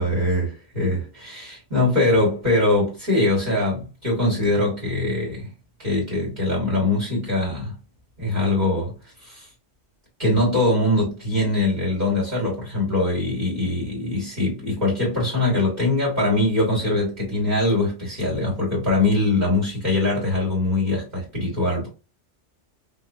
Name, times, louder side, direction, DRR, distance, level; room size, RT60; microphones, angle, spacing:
voice 1, 0.0-5.5 5.8-7.7 8.2-8.9 9.2-9.5 10.2-21.9, left 2 dB, 40° right, 2.0 m, -22 dB
5.2 x 2.2 x 2.7 m
omnidirectional pair, 1.2 m